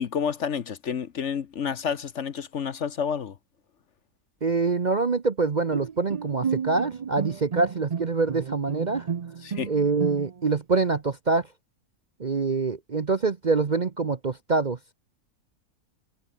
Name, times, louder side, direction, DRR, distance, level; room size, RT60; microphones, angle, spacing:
voice 1, 0.0-3.4 9.4-9.7, left 7 dB, 55° left, 1.2 m, -29 dB
voice 2, 4.4-9.1 9.7-11.5 12.2-14.8, right 4 dB, 35° right, 0.8 m, -25 dB
Bowed string instrument, 5.7-10.6, right 7 dB, 60° right, 0.4 m, -32 dB
omnidirectional pair, 1.6 m